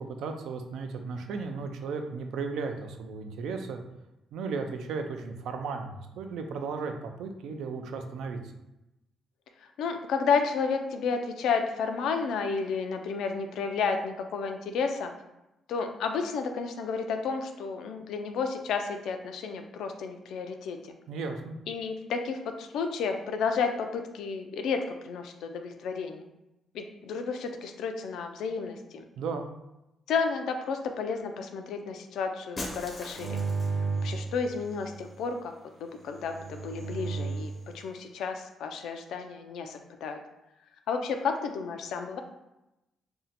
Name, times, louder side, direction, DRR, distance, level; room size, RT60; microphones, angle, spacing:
voice 1, 0.1-3.8 4.3-8.4 21.1-21.6 29.2-29.5, right 4 dB, 85° right, 5 dB, 0.4 m, -35 dB
voice 2, 9.8-15.1 15.7-20.8 21.7-26.3 26.7-29.0 30.1-33.4 34.0-35.5 35.8-40.2 40.9-42.2, left 5 dB, 85° left, 5 dB, 0.4 m, -31 dB
Shatter, 32.6-33.9, left 2 dB, 30° left, 0.5 m, -39 dB
sound 1, 33.1-35.1 36.1-37.6, right 4 dB, 30° right, 0.6 m, -33 dB
2.7 x 2.1 x 4.0 m, 0.93 s
cardioid pair, 135°, 0 cm